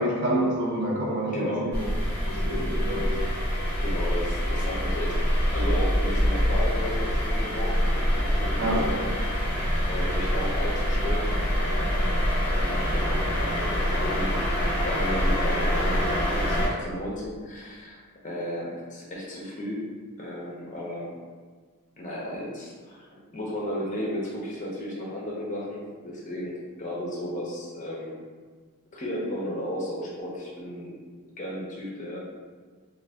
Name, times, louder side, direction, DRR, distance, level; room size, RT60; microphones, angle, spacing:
voice 1, 0.0-1.8 2.3-3.2 8.6-8.8, right 1 dB, 55° right, -3 dB, 0.6 m, -27 dB
voice 2, 1.3-1.7 3.8-5.2 5.5-9.1 9.9-11.3 12.4-14.6 14.8-19.9 20.2-21.1 22.0-28.2 28.9-31.0 31.4-32.2, equal, 35° left, -4 dB, 0.6 m, -34 dB
sound 1, 1.7-16.7, equal, 10° left, 1.2 m, -25 dB
2.5 x 2.4 x 3.4 m, 1.5 s
head